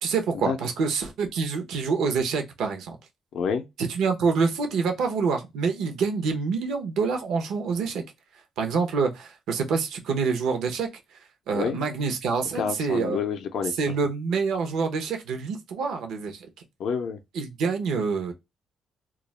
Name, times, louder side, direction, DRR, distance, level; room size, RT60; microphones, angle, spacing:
voice 1, 0.0-3.0 3.8-8.0 8.6-10.9 11.5-13.2 13.8-16.5 17.3-18.3, right 5 dB, 80° right, 0.6 m, -26 dB
voice 2, 3.3-3.6 11.5-11.8 12.5-13.7 16.8-17.2, left 6 dB, 70° left, 0.4 m, -28 dB
2.3 x 2.0 x 3.0 m
cardioid pair, 75°, 0 cm